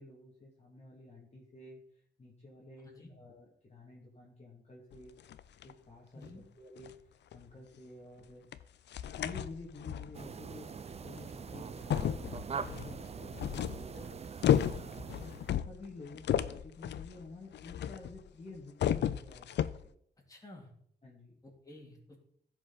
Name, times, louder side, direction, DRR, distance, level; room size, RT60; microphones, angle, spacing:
voice 1, 0.0-1.8 2.2-5.1 5.6-6.9 7.3-8.5 9.0-12.2 12.6-13.9 14.4-19.5 19.8-19.9 21.0-21.4, left 2 dB, 40° left, -3 dB, 2.0 m, -51 dB
sound 1, 4.9-5.7 6.2-6.4 6.8-6.9 7.3-7.4 8.5-8.6 8.9-10.2 11.2-11.3 11.8-18.3 18.6-19.9, left 10 dB, 90° left, 0.4 m, -33 dB
voice 2, 6.1-6.5 12.6-13.0 13.9-14.1 20.3-20.7 21.4-22.2, left 1 dB, 20° left, -2 dB, 3.1 m, -51 dB
sound 2, 10.1-15.6, right 6 dB, 35° right, 0.4 m, -43 dB
15.0 x 5.2 x 3.9 m, 0.67 s
cardioid pair, 90°, 18 cm